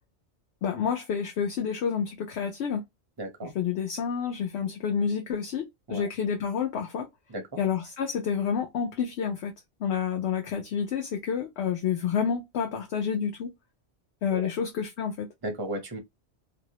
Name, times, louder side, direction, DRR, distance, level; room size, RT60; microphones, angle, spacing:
voice 1, 0.6-2.8 3.4-7.1 7.6-9.5 9.8-13.5 14.2-15.3, left 7 dB, 70° left, 0.8 m, -29 dB
voice 2, 3.2-3.5 5.9-6.1 7.3-7.4 14.3-14.5 15.4-16.0, right 1 dB, 25° right, 0.6 m, -34 dB
2.6 x 2.0 x 2.8 m
omnidirectional pair, 1.2 m